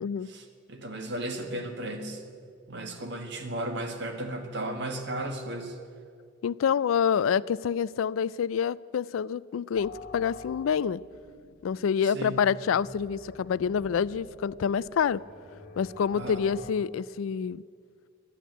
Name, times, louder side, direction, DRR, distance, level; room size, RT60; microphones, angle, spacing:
voice 1, 0.2-2.2 2.7-5.8 12.0-12.4 16.1-16.4, right 1 dB, 60° right, 5 dB, 1.7 m, -35 dB
voice 2, 6.4-11.0 11.6-15.2 15.8-17.6, left 7 dB, 85° left, 20 dB, 0.3 m, -27 dB
sound 1, 9.8-16.7, left 3 dB, 50° left, 1.9 m, -48 dB
12.0 x 11.0 x 9.2 m, 2.2 s
head